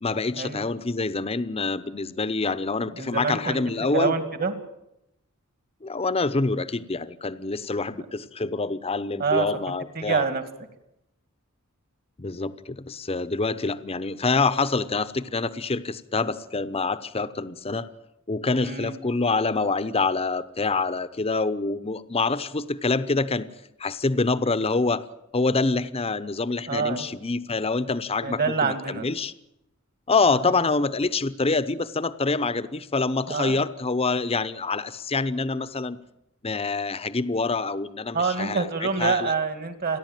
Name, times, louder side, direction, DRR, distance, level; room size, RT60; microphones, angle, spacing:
voice 1, 0.0-4.2 5.8-10.3 12.2-17.9 18.3-23.5 23.8-25.0 25.3-29.3 30.1-36.0 36.4-38.7 39.0-39.3, left 3 dB, 30° left, 13 dB, 0.8 m, -26 dB
voice 2, 3.0-3.6 3.9-4.5 9.2-10.4 18.6-19.0 26.7-27.1 28.2-29.1 30.3-30.5 33.3-33.6 38.1-40.0, right 5 dB, 45° right, 10 dB, 2.3 m, -26 dB
29.5 x 11.5 x 9.2 m, 0.84 s
head